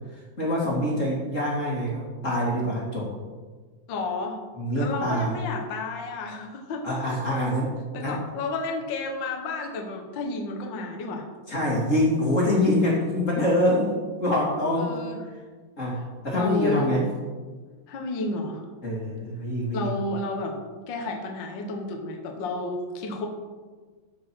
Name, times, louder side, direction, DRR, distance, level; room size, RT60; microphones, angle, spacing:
voice 1, 0.1-3.1 4.6-5.4 6.8-8.2 11.5-15.0 15.8-17.0 18.8-19.9, left 1 dB, 30° left, -4 dB, 1.8 m, -25 dB
voice 2, 3.9-4.4 4.7-6.8 7.9-11.3 14.8-15.2 15.9-16.0 16.3-16.9 17.9-18.6 19.7-20.5 20.9-23.3, left 3 dB, 60° left, 2 dB, 1.2 m, -31 dB
14.0 x 5.0 x 6.1 m, 1.4 s
omnidirectional pair, 4.2 m